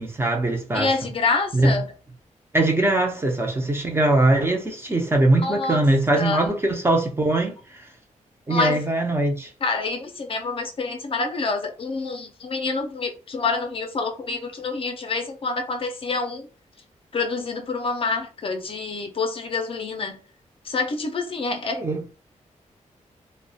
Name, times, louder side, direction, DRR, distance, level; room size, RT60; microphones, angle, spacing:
voice 1, 0.0-0.9 1.5-1.8 2.5-7.8 8.5-9.5 21.7-22.0, right 2 dB, 20° right, 0.5 m, -21 dB
voice 2, 0.7-1.9 5.4-5.8 6.2-6.5 8.5-8.8 9.6-16.5 17.1-20.2 20.7-21.8, left 4 dB, 45° left, 0.4 m, -27 dB
2.3 x 2.1 x 2.6 m
wide cardioid pair, 125°, 13 cm